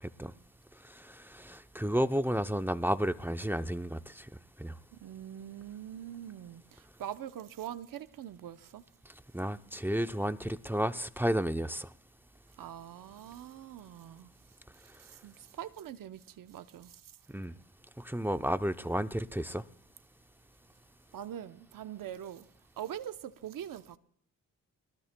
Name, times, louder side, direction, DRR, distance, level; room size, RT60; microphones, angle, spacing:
voice 1, 0.0-0.3 0.8-4.3 4.6-4.7 9.3-11.9 17.3-17.5 18.0-19.6, equal, 5° right, 0.6 m, -32 dB
voice 2, 4.9-8.8 12.6-14.3 14.8-17.1 21.1-22.5 22.8-24.0, right 10 dB, 70° right, 0.8 m, -43 dB
28.0 x 19.5 x 2.2 m
cardioid pair, 80°, 34 cm